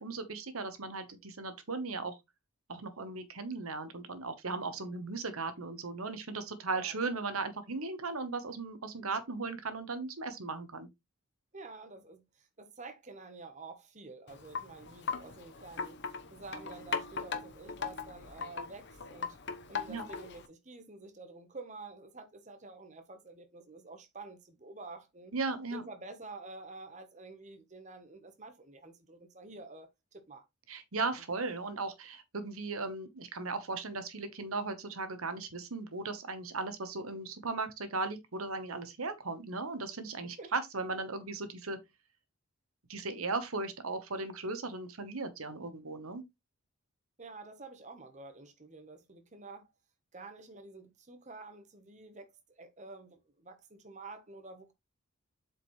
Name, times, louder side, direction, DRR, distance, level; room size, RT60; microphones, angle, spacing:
voice 1, 0.0-2.2 2.7-10.9 19.9-20.0 25.3-25.8 30.7-41.8 42.9-46.2, right 3 dB, 80° right, 1.2 m, -37 dB
voice 2, 11.5-16.0 16.3-19.4 19.7-25.3 25.7-30.5 40.2-40.5 47.2-49.7 50.1-54.7, right 3 dB, 35° right, 1.1 m, -49 dB
Wind chime, 14.3-20.5, left 5 dB, 55° left, 1.0 m, -39 dB
7.9 x 4.9 x 3.1 m
head